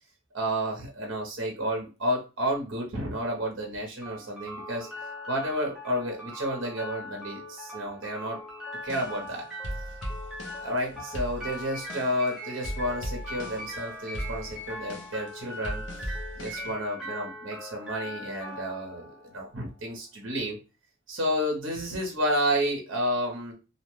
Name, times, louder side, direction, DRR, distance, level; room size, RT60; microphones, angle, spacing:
voice 1, 0.3-4.9 5.3-8.4 8.8-9.4 10.6-15.8 16.4-20.6 21.1-23.5, equal, 65° right, 0 dB, 0.7 m, -31 dB
sound 1, 4.0-20.0, left 1 dB, ahead, 0.7 m, -41 dB
sound 2, 8.8-10.8 11.1-12.3 12.6-13.8 14.1-16.7, equal, 65° left, 0.7 m, -38 dB
2.6 x 2.1 x 3.0 m, 0.30 s
head